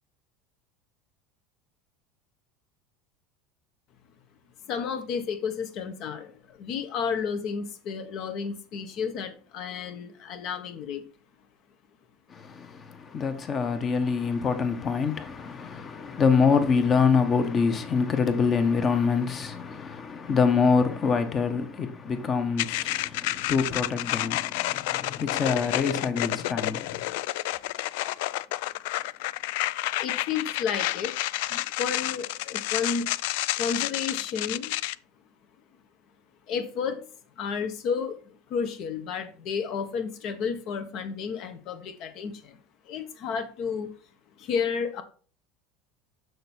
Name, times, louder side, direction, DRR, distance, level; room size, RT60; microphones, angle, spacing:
voice 1, 4.7-11.0 30.0-31.1 31.5-33.1 33.6-34.7 36.5-37.0 37.4-38.2 38.5-42.6 42.8-43.9 44.4-45.0, left 6 dB, 50° left, 1.5 m, -31 dB
voice 2, 12.3-27.0, left 5 dB, 30° left, 1.3 m, -25 dB
sound 1, 22.6-34.9, left 17 dB, 75° left, 0.4 m, -30 dB
6.7 x 6.5 x 4.6 m
supercardioid pair, 140°, 0 cm